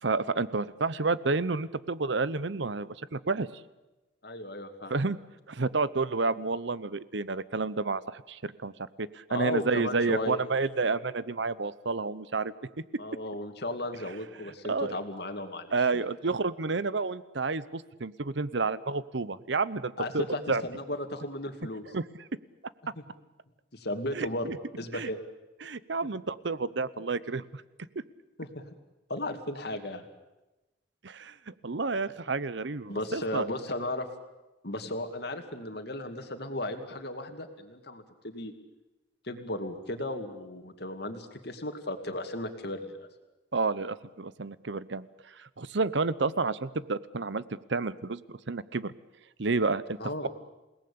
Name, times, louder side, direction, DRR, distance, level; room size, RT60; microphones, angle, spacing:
voice 1, 0.0-3.5 4.9-5.2 5.5-12.5 14.6-15.0 15.7-20.6 21.9-22.0 24.1-24.6 24.9-25.1 25.6-27.6 28.0-28.1 31.0-33.4 43.5-47.4 47.7-48.9 49.4-50.0 50.2-50.3, right 3 dB, 65° right, 17 dB, 0.8 m, -30 dB
voice 2, 4.2-4.9 9.3-10.4 13.0-16.0 20.0-21.9 23.7-24.5 24.8-25.2 28.4-28.6 29.1-30.0 32.9-34.1 34.6-38.5 39.2-43.1 50.0-50.3, left 1 dB, 55° left, 6 dB, 2.5 m, -35 dB
28.0 x 18.5 x 8.7 m, 1.1 s
head